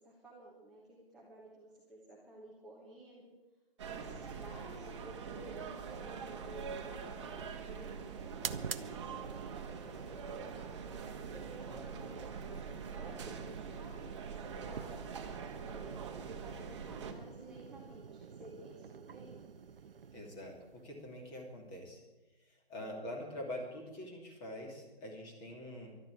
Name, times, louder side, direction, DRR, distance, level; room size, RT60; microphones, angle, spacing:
voice 1, 0.0-3.3 3.9-10.6 11.3-15.0 15.6-16.1 16.3-19.4, right 2 dB, ahead, -7 dB, 1.3 m, -54 dB
sound 1, 3.8-17.1, right 6 dB, 30° right, 1.5 m, -44 dB
sound 2, 6.6-21.9, right 6 dB, 60° right, 0.8 m, -48 dB
voice 2, 11.7-12.0 20.1-22.0 22.5-25.9, left 1 dB, 15° left, 1 dB, 2.6 m, -45 dB
12.0 x 12.0 x 8.5 m, 1.1 s
hypercardioid pair, 155°, 31 cm